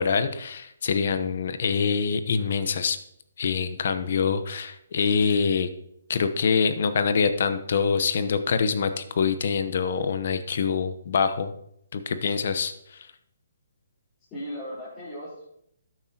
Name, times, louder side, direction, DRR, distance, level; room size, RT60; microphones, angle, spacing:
voice 1, 0.0-3.0 3.4-5.7 6.1-11.5 11.9-12.7, left 5 dB, 60° left, 10 dB, 0.9 m, -25 dB
voice 2, 14.3-15.5, equal, 20° left, -10 dB, 4.1 m, -37 dB
12.5 x 9.1 x 2.9 m, 0.74 s
hypercardioid pair, 145°, 0 cm